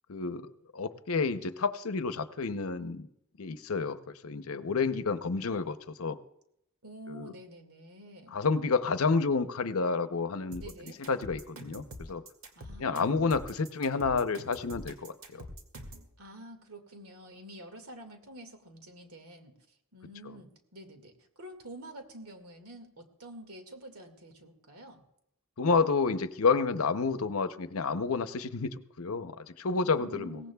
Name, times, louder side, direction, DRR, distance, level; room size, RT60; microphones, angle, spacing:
voice 1, 0.1-3.1 3.4-4.0 4.2-6.2 7.1-7.3 8.3-10.6 11.1-12.2 12.8-15.4 25.6-30.4, left 4 dB, 75° left, 11 dB, 0.7 m, -30 dB
voice 2, 6.8-8.4 10.6-11.0 12.6-13.5 16.2-19.5 19.9-25.0 29.7-30.5, right 1 dB, 85° right, 5 dB, 2.0 m, -48 dB
sound 1, 10.5-16.1, equal, 70° right, 2.2 m, -45 dB
22.5 x 17.5 x 2.3 m, 0.77 s
head